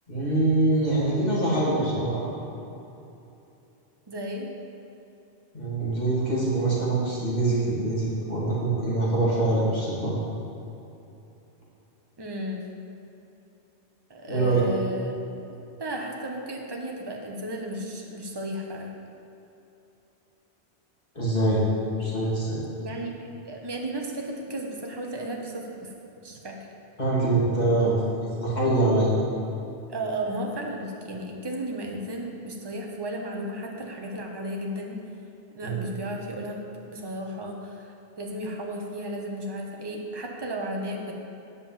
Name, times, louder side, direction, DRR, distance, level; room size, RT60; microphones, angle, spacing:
voice 1, 0.1-2.3 5.5-10.1 14.3-14.6 21.1-21.6 22.0-22.6 27.0-29.1 35.6-35.8, right 2 dB, 40° left, -7 dB, 2.9 m, -24 dB
voice 2, 4.1-4.5 12.2-12.6 14.1-15.2 15.8-18.9 22.8-23.1 23.5-25.9 26.2-26.6 29.9-35.0 35.5-36.6 36.9-41.1, right 1 dB, 25° right, 0 dB, 1.1 m, -34 dB
10.0 x 5.4 x 7.5 m, 2.9 s
omnidirectional pair, 1.1 m